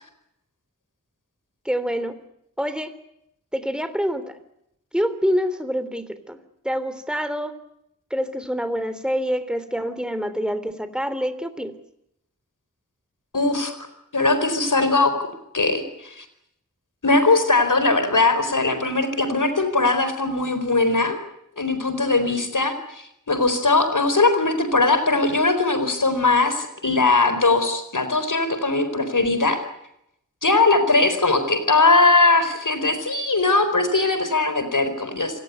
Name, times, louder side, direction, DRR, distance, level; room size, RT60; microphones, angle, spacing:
voice 1, 1.6-2.2 2.6-3.0 3.5-4.4 4.9-7.5 8.1-11.8, equal, 5° right, 12 dB, 3.2 m, -26 dB
voice 2, 13.3-13.9 14.1-15.1 15.5-16.3 17.0-21.2 21.6-29.6 30.4-35.4, left 3 dB, 70° left, 10 dB, 4.5 m, -20 dB
27.0 x 18.5 x 9.4 m, 0.79 s
wide cardioid pair, 40°, 32 cm